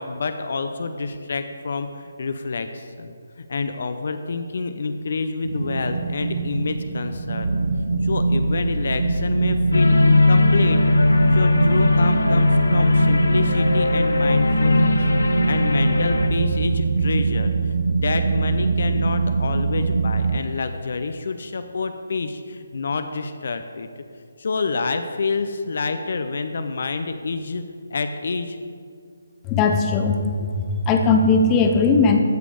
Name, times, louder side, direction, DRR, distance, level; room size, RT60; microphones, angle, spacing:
voice 1, 0.0-7.6 8.0-10.8 11.3-15.0 15.3-23.9 24.4-27.6 27.9-28.6, left 4 dB, 55° left, 8 dB, 0.6 m, -28 dB
sound 1, 5.4-20.4, right 3 dB, 65° right, 0.6 m, -23 dB
sound 2, 9.7-16.3, left 2 dB, 75° left, 1.0 m, -19 dB
voice 2, 29.4-32.2, left 4 dB, 20° left, 4 dB, 0.7 m, -19 dB
14.5 x 5.0 x 5.0 m, 2.2 s
figure-of-eight pair, 150°, 0 cm